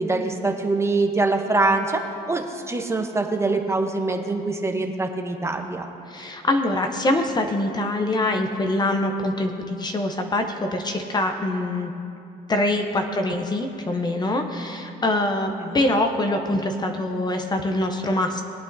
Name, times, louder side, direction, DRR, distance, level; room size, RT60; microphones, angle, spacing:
voice 1, 0.0-2.0 2.3-5.9, right 3 dB, 15° right, 4 dB, 0.9 m, -24 dB
voice 2, 6.1-11.9 12.5-18.4, left 1 dB, 25° left, 5 dB, 0.8 m, -24 dB
21.0 x 8.2 x 2.7 m, 2.6 s
cardioid pair, 110°, 17 cm